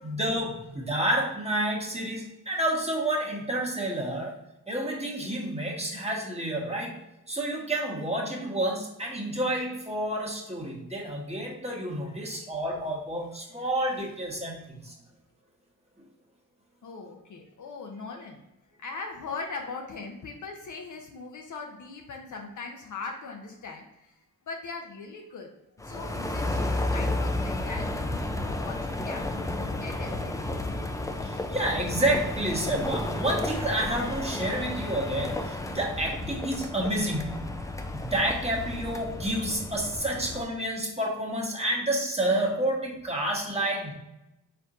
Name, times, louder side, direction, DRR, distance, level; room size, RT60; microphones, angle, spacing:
voice 1, 0.0-4.4 4.7-6.9 7.3-14.9 31.2-37.5 37.9-43.9, right 1 dB, 15° right, -1 dB, 1.2 m, -29 dB
voice 2, 16.8-18.5 18.8-24.2 24.5-25.5 25.8-30.5, left 4 dB, 55° left, 2 dB, 0.8 m, -40 dB
sound 1, 25.8-40.4, left 2 dB, 10° left, 0.5 m, -32 dB
4.5 x 3.5 x 2.6 m, 0.91 s
supercardioid pair, 50°, 37 cm